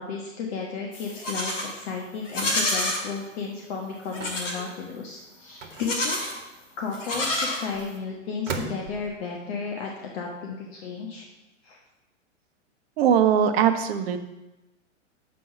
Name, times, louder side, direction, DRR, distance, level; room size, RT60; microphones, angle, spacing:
voice 1, 0.0-6.2 6.8-11.3 11.6-11.8, left 5 dB, 50° left, 0 dB, 1.3 m, -33 dB
Livestock farm animals working animals, 0.9-1.7 2.2-3.0 4.1-4.6 5.7-6.4 6.9-8.0, left 1 dB, 70° left, 2.5 m, -28 dB
sound 1, 2.4-2.8 4.2-4.5 5.6-6.3 7.1-7.8 8.5-9.2, right 4 dB, 75° right, 1.2 m, -37 dB
voice 2, 13.0-14.2, right 8 dB, 50° right, 8 dB, 0.9 m, -20 dB
7.6 x 5.5 x 5.6 m, 1.0 s
hypercardioid pair, 110°, 38 cm